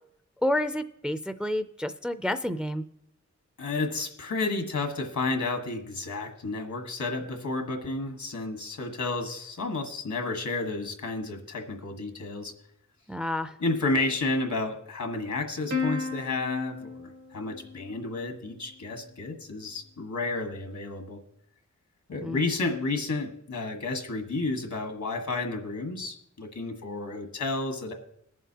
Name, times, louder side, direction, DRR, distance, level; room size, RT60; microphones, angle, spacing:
voice 1, 0.4-2.9 13.1-13.5 22.2-22.4, left 1 dB, 5° right, 11 dB, 0.4 m, -29 dB
voice 2, 3.6-12.5 13.6-21.2 22.1-27.9, left 3 dB, 80° left, 5 dB, 1.5 m, -31 dB
Plucked string instrument, 15.7-18.4, left 4 dB, 85° right, 1.7 m, -34 dB
21.5 x 7.3 x 2.8 m, 0.74 s
wide cardioid pair, 75°, 29 cm